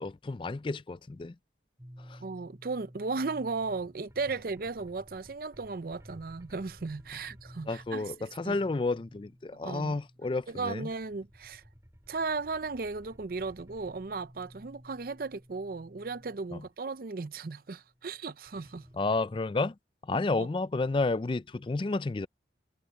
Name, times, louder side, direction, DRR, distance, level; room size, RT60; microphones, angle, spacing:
voice 1, 0.0-1.3 2.1-2.2 7.7-10.9 16.5-16.6 18.9-19.7 20.0-22.3, left 3 dB, 25° left, 0.4 m, -31 dB
sound 1, 1.8-16.5 16.9-19.2, equal, 15° right, 2.4 m, -54 dB
voice 2, 2.2-8.6 9.6-10.0 10.5-11.6 12.1-18.9 20.1-20.5, right 4 dB, 50° right, 0.5 m, -36 dB
head